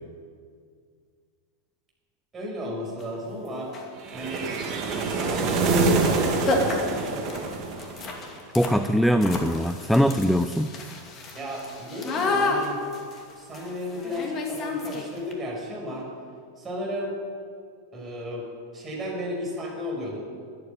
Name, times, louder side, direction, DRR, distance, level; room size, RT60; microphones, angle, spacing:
voice 1, 2.3-3.7 4.1-7.0 11.3-12.8 13.4-16.1 16.6-17.1 17.9-18.5 18.7-20.2, left 1 dB, 20° right, -2 dB, 5.7 m, -33 dB
sound 1, 3.0-3.1 3.6-4.0 5.7-5.9 6.1-6.2 6.5-15.3, left 3 dB, 30° left, 2.5 m, -31 dB
sound 2, 4.1-8.3, right 4 dB, 35° right, 2.4 m, -25 dB
voice 2, 8.5-10.7, equal, ahead, 10 dB, 0.5 m, -21 dB
13.5 x 11.0 x 9.1 m, 2.1 s
figure-of-eight pair, 90°, 0 cm